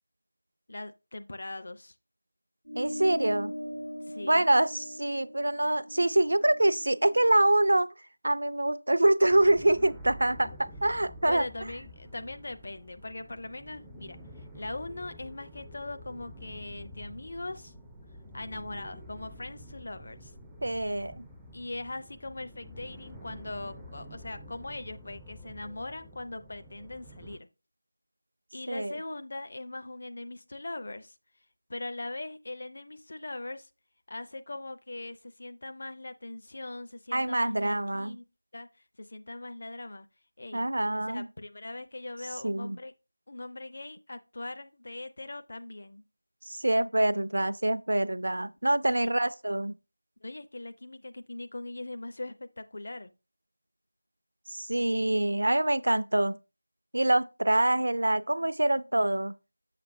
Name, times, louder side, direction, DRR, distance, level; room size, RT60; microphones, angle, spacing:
voice 1, 0.7-2.0 4.0-4.4 11.2-17.7 18.3-20.3 21.5-27.5 28.5-31.2 31.7-33.7 34.1-38.2 38.5-40.1 40.4-40.7 40.9-42.9 43.3-46.0 48.9-49.1 50.2-53.1, left 2 dB, 45° left, 0.6 m, -40 dB
sound 1, 2.6-7.4, equal, 80° left, 1.8 m, -40 dB
voice 2, 2.8-3.5 4.2-7.9 8.2-11.5 20.6-21.2 28.7-28.9 37.1-38.2 40.5-41.3 42.4-42.8 46.5-49.8 54.5-56.4 56.9-59.3, right 1 dB, 60° right, 0.4 m, -25 dB
sound 2, 9.2-27.4, equal, ahead, 0.4 m, -48 dB
6.8 x 6.7 x 2.6 m
figure-of-eight pair, 170°, 0 cm